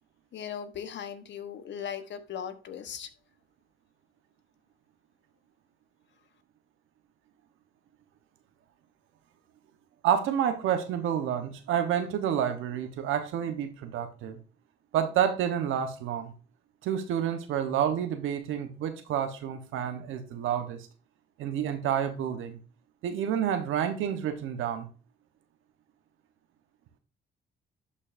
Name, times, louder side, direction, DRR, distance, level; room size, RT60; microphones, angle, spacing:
voice 1, 0.3-3.1, left 8 dB, 65° left, 1.3 m, -38 dB
voice 2, 10.0-14.4 14.9-16.3 16.8-20.9 21.4-22.6 23.0-24.9, right 9 dB, 85° right, 1.3 m, -29 dB
11.5 x 5.5 x 2.7 m
cardioid pair, 90°, 20 cm